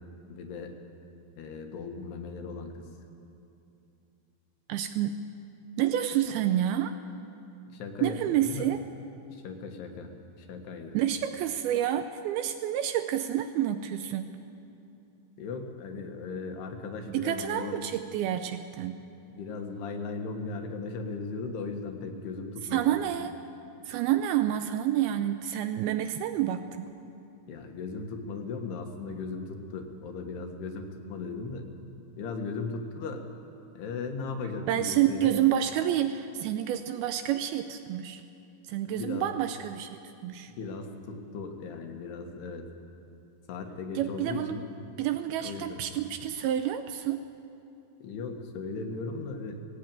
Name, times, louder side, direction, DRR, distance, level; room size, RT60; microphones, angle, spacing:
voice 1, 0.3-0.7 1.4-2.9 7.7-8.7 9.3-10.1 10.4-11.0 15.4-17.8 19.3-23.0 27.5-31.6 32.2-33.2 33.7-35.3 38.9-39.3 40.6-42.7 43.5-44.6 45.4-45.8 48.0-49.7, left 4 dB, 75° left, 4 dB, 3.3 m, -37 dB
voice 2, 4.7-5.2 5.8-6.9 8.0-8.8 10.9-14.4 17.1-19.0 22.7-23.3 23.9-26.9 34.7-38.2 38.6-40.5 44.0-44.6 45.0-47.2, right 11 dB, 80° right, 9 dB, 2.3 m, -29 dB
18.0 x 17.0 x 9.0 m, 2.7 s
omnidirectional pair, 4.8 m